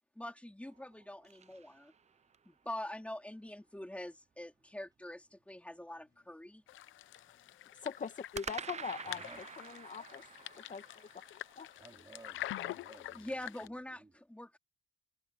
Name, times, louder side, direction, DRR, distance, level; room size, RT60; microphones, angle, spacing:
voice 1, 0.2-1.9 2.5-6.6 13.2-14.6, left 1 dB, 5° left, 3.8 m, -45 dB
sound 1, 0.6-2.5 8.3-12.6, right 6 dB, 35° right, 0.7 m, -48 dB
sound 2, 6.7-13.7, left 14 dB, 80° left, 0.8 m, -46 dB
voice 2, 7.8-9.2 9.6-10.2 10.7-11.1 11.6-11.7, left 6 dB, 40° left, 1.9 m, -41 dB
voice 3, 9.0-9.4 11.8-14.2, right 3 dB, 20° right, 3.9 m, -57 dB
cardioid pair, 90°, 20 cm